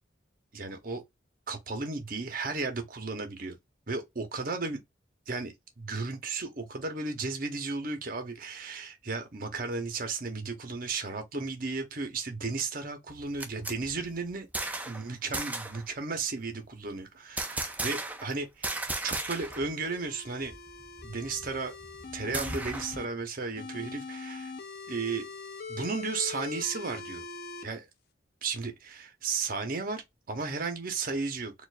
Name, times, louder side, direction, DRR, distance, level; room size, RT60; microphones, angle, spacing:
voice 1, 0.5-1.0 1.5-3.6 3.9-4.8 5.3-14.5 14.9-20.5 21.0-21.7 22.1-24.5 24.9-25.3 25.7-27.2 27.6-27.9 28.4-31.5, right 4 dB, 45° right, 0.9 m, -34 dB
sound 1, 13.1-15.0 15.3-15.8 17.4-18.3 18.6-19.7 20.0-20.1 20.4-23.0, right 2 dB, 10° right, 0.5 m, -36 dB
sound 2, 19.1-23.1 23.6-27.6, left 4 dB, 50° left, 0.7 m, -42 dB
4.4 x 2.5 x 2.5 m
head